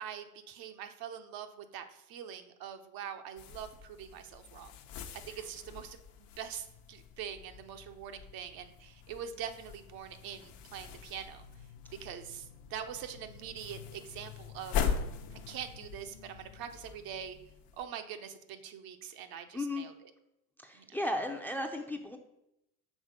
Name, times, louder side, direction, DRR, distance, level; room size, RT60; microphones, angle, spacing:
voice 1, 0.0-4.8 5.3-11.4 12.0-14.9 15.3-17.4 17.8-20.1 20.7-21.0, right 8 dB, 55° right, 8 dB, 0.8 m, -44 dB
sound 1, 3.4-17.8, left 7 dB, 55° left, 0.8 m, -42 dB
voice 2, 19.5-19.9 20.6-22.2, left 1 dB, 5° left, 4 dB, 0.5 m, -35 dB
6.3 x 3.6 x 5.1 m, 0.84 s
hypercardioid pair, 85°, 42 cm